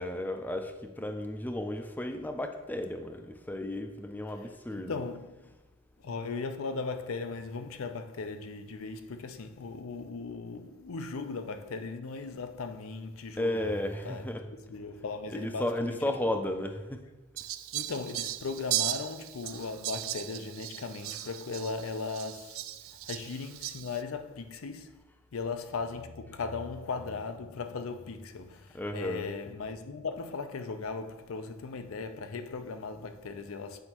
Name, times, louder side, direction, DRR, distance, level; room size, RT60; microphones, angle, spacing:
voice 1, 0.0-5.0 13.4-14.4 15.3-17.0 28.7-29.3, left 1 dB, 10° left, 0.4 m, -34 dB
voice 2, 4.7-5.5 6.0-13.8 14.0-14.3 14.7-16.4 17.7-22.7 23.0-25.0 25.3-33.8, left 4 dB, 80° left, 0.5 m, -38 dB
Fowl, 17.4-24.0, right 14 dB, 70° right, 0.3 m, -37 dB
7.9 x 5.2 x 2.9 m
head